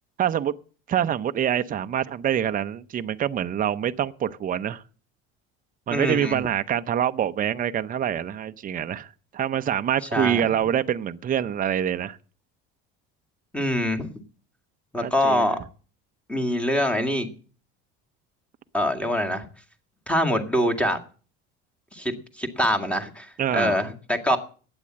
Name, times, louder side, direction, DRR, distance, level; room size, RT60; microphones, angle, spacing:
voice 1, 0.2-0.5 0.9-4.8 5.9-12.2 15.0-15.5 23.4-23.8, right 9 dB, 30° right, 0.7 m, -25 dB
voice 2, 5.9-6.4 10.1-10.4 13.5-14.1 14.9-15.6 16.3-17.3 18.7-19.5 20.1-21.0 21.9-24.4, equal, 5° left, 2.0 m, -24 dB
12.0 x 9.0 x 7.4 m
cardioid pair, 120°, 29 cm